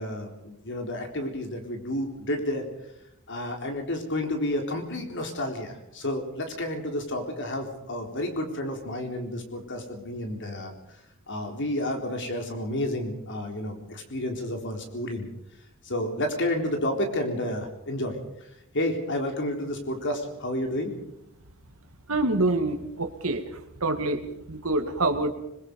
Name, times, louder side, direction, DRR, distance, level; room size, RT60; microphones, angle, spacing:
voice 1, 0.0-2.7 3.3-10.7 11.3-15.3 15.8-18.2 18.7-20.9, left 1 dB, 55° left, 4 dB, 3.9 m, -30 dB
voice 2, 22.1-23.4 23.8-24.2 24.5-25.3, right 2 dB, 70° right, 7 dB, 2.1 m, -26 dB
25.5 x 21.5 x 5.4 m, 0.82 s
head